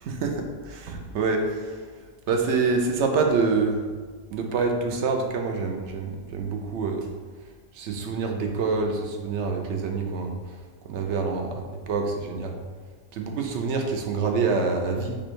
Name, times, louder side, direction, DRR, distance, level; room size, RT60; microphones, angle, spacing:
voice 1, 0.0-1.7 2.3-3.8 4.3-7.1 7.8-10.4 10.9-12.6 13.1-15.2, right 4 dB, 65° right, 3 dB, 0.8 m, -26 dB
5.0 x 2.3 x 4.4 m, 1.5 s
omnidirectional pair, 1.4 m